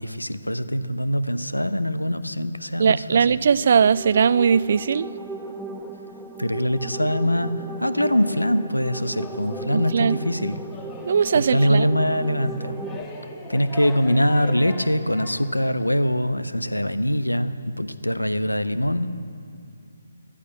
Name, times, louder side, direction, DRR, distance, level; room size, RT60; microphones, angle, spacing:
voice 1, 0.0-3.4 6.4-7.5 7.8-10.6 11.3-12.8 13.5-19.1, equal, 90° left, 12 dB, 0.9 m, -23 dB
voice 2, 2.8-5.1 9.7-10.2 11.0-11.9, right 6 dB, 45° right, 18 dB, 0.4 m, -19 dB
sound 1, 3.6-13.0, right 3 dB, ahead, 0.7 m, -36 dB
sound 2, 7.7-15.5, left 3 dB, 15° left, 1.6 m, -41 dB
15.0 x 11.5 x 8.1 m, 2.6 s
figure-of-eight pair, 140°, 0 cm